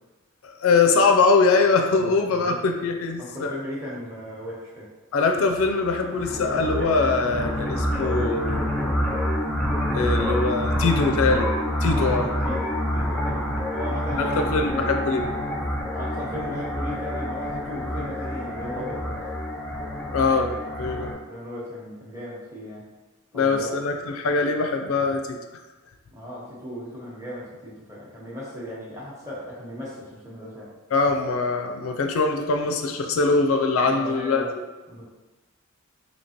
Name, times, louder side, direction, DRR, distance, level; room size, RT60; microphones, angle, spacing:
voice 1, 0.4-3.5 5.1-8.7 9.9-11.5 11.8-12.3 14.2-15.3 20.1-21.2 23.3-25.4 30.9-34.4, left 4 dB, 70° left, 4 dB, 0.4 m, -22 dB
voice 2, 2.0-2.6 3.2-4.9 11.8-14.9 15.9-19.2 21.2-22.9 23.3-23.7 26.1-30.7 33.9-34.5 34.9-35.0, equal, 15° right, -6 dB, 0.9 m, -36 dB
sound 1, 5.6-21.1, equal, 5° left, 0.4 m, -27 dB
4.4 x 2.8 x 2.8 m, 1.2 s
head